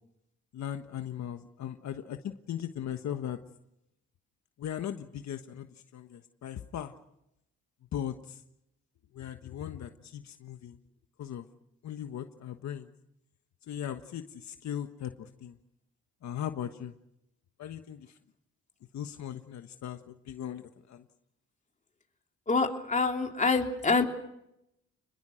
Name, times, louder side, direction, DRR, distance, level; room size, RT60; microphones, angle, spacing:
voice 1, 0.5-3.4 4.6-5.7 5.9-6.9 7.9-8.4 9.1-10.8 11.2-11.5 11.8-12.9 13.7-15.6 16.2-16.9 17.6-18.2 18.9-21.0, left 10 dB, 65° left, 7 dB, 1.4 m, -38 dB
voice 2, 22.5-24.0, left 4 dB, 25° left, 3 dB, 3.3 m, -26 dB
29.0 x 21.5 x 6.5 m, 0.83 s
cardioid pair, 90°, 30 cm